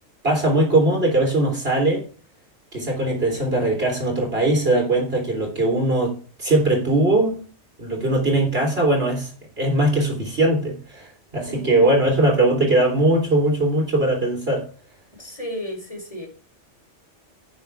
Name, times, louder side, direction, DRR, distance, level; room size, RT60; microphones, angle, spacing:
voice 1, 0.2-2.1 2.7-7.4 7.8-9.3 9.6-14.6, right 1 dB, 55° right, 3.8 m, -20 dB
voice 2, 11.5-11.8 15.2-16.3, left 1 dB, 30° left, 4.0 m, -33 dB
10.5 x 9.3 x 3.5 m
omnidirectional pair, 1.2 m